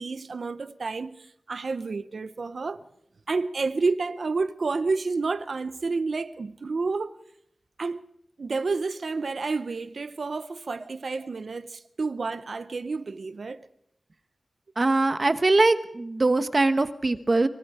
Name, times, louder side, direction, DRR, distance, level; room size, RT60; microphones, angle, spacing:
voice 1, 0.0-2.8 3.3-7.2 7.8-8.0 8.4-13.7, right 4 dB, 75° right, 0.8 m, -30 dB
voice 2, 14.8-17.5, right 2 dB, 45° right, 1.2 m, -22 dB
24.0 x 24.0 x 5.0 m
wide cardioid pair, 65°, 0 cm